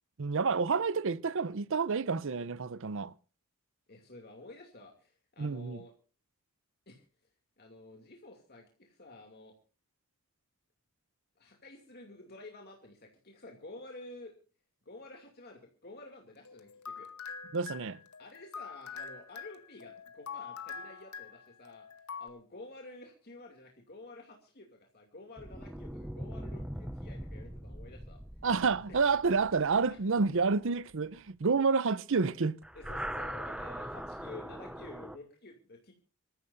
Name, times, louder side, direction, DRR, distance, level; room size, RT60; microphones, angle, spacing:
voice 1, 0.2-3.1 5.4-5.8 17.5-18.0 28.4-32.6, right 4 dB, 60° right, 0.6 m, -29 dB
voice 2, 3.9-5.9 6.9-7.0 7.6-9.5 11.4-14.3 14.8-17.1 18.2-21.9 22.2-28.2 29.3-29.4 29.7-30.0 30.3-30.4 32.7-35.9, left 2 dB, 45° left, 2.6 m, -51 dB
sound 1, 16.4-22.3, left 6 dB, 85° left, 1.9 m, -45 dB
sound 2, 25.4-30.9 32.6-35.2, equal, 5° right, 0.6 m, -42 dB
26.5 x 14.5 x 2.6 m
head